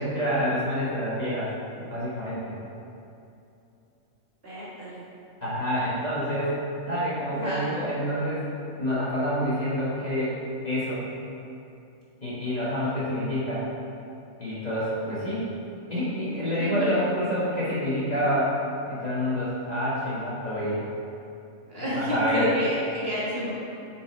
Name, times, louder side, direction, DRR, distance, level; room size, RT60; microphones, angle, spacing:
voice 1, 0.0-1.5 1.8-2.5 5.4-10.4 10.6-11.0 12.2-13.7 14.4-15.5 15.9-18.5 18.9-20.9 21.9-22.5, equal, 30° left, -9 dB, 1.5 m, -27 dB
voice 2, 4.4-5.0 7.3-7.7 16.6-16.9 21.6-23.5, equal, 45° right, -9 dB, 1.9 m, -29 dB
6.6 x 5.0 x 4.4 m, 2.7 s
omnidirectional pair, 1.4 m